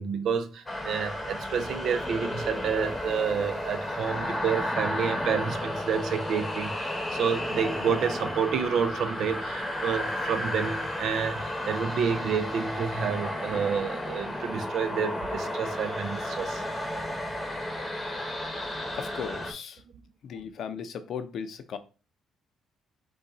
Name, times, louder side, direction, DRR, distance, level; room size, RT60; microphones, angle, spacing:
voice 1, 0.0-16.6, right 6 dB, 65° right, 0.7 m, -29 dB
sound 1, 0.7-19.5, left 1 dB, 15° left, 1.0 m, -33 dB
voice 2, 18.9-19.8 20.2-21.8, left 7 dB, 60° left, 0.6 m, -37 dB
5.5 x 2.4 x 4.0 m
cardioid pair, 110°, 0 cm